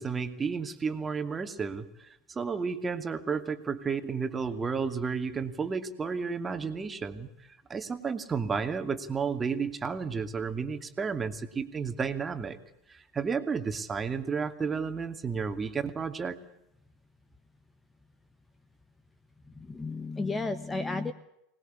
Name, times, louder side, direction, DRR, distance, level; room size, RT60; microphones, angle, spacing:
voice 1, 0.0-7.3 7.7-12.6 12.9-16.4, right 5 dB, 20° right, 8 dB, 2.6 m, -32 dB
voice 2, 19.4-21.1, left 3 dB, 15° left, 12 dB, 1.5 m, -33 dB
25.5 x 20.0 x 8.5 m, 0.80 s
figure-of-eight pair, 80°, 0 cm